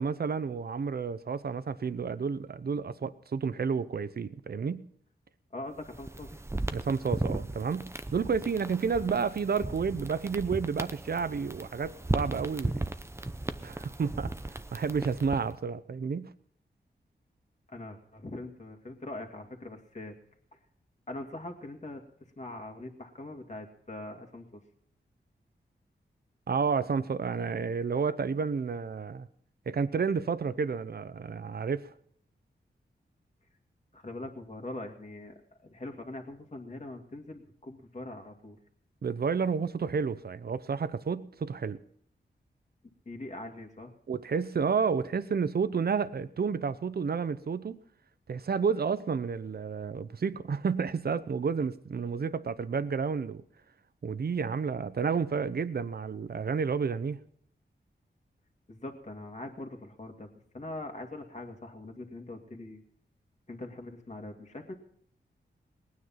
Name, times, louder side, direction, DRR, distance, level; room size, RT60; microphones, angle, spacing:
voice 1, 0.0-4.8 6.7-12.9 13.6-16.3 26.5-29.3 29.7-31.9 39.0-41.8 44.1-47.8 48.3-53.4 54.0-57.2, right 5 dB, 55° right, 0.8 m, -31 dB
voice 2, 5.5-6.4 17.7-20.1 20.5-20.6 21.1-22.0 22.4-24.6 33.9-38.6 43.1-43.9 58.7-60.3 60.5-62.8 63.5-64.7, left 2 dB, 40° left, 2.3 m, -42 dB
sound 1, 5.8-15.6, right 2 dB, 15° right, 0.7 m, -36 dB
19.5 x 9.6 x 5.8 m
wide cardioid pair, 80°, 19 cm